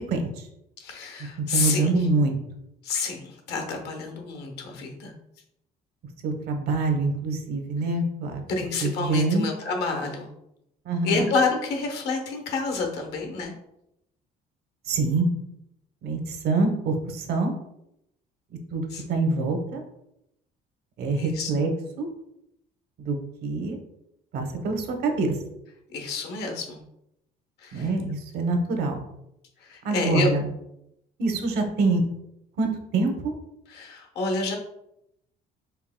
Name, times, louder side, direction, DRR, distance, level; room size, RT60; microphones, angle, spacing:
voice 1, 0.8-2.1 2.8-5.1 8.5-10.3 11.0-13.5 18.9-19.0 21.2-21.5 25.9-26.8 27.6-27.9 29.6-30.3 33.7-34.6, left 4 dB, 75° left, 3 dB, 1.0 m, -29 dB
voice 2, 1.5-2.3 6.2-8.4 8.8-9.5 10.8-11.3 14.9-15.3 16.0-17.5 18.7-19.8 21.0-21.7 22.0-22.1 23.0-23.8 24.3-25.3 27.7-29.0 29.8-30.4 31.2-32.0 32.6-33.3, right 3 dB, 70° right, 4 dB, 0.9 m, -25 dB
4.6 x 3.4 x 2.2 m, 0.80 s
cardioid pair, 110°, 17 cm